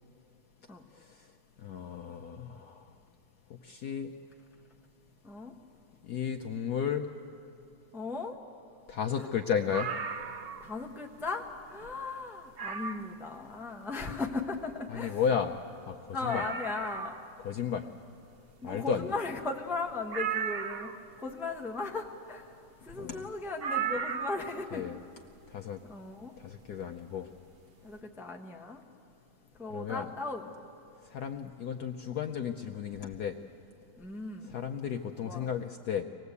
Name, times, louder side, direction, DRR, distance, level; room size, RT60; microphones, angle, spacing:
voice 1, 1.6-2.8 3.6-4.1 6.0-7.1 8.9-9.9 14.9-15.6 15.9-16.4 17.4-17.8 18.6-19.1 23.0-23.2 24.7-25.0 25.5-25.8 26.4-27.3 29.7-30.1 31.1-33.4 34.4-36.0, left 7 dB, 65° left, 5 dB, 1.0 m, -33 dB
voice 2, 5.2-5.5 7.9-8.4 9.1-9.3 10.6-15.2 16.1-17.2 18.6-20.9 21.2-22.5 22.8-24.8 25.9-26.3 27.8-28.8 29.6-30.5 34.0-34.5 35.2-35.5, left 3 dB, ahead, 2 dB, 0.8 m, -37 dB
sound 1, 9.7-10.8 11.2-11.3 11.8-11.9 12.6-13.2 14.9-15.0 15.2-15.3 15.7-15.8 16.2-17.3 20.1-21.1 23.6-24.6 25.9-26.0, right 7 dB, 65° right, 0.6 m, -35 dB
24.5 x 19.0 x 8.3 m, 2.6 s
omnidirectional pair, 2.3 m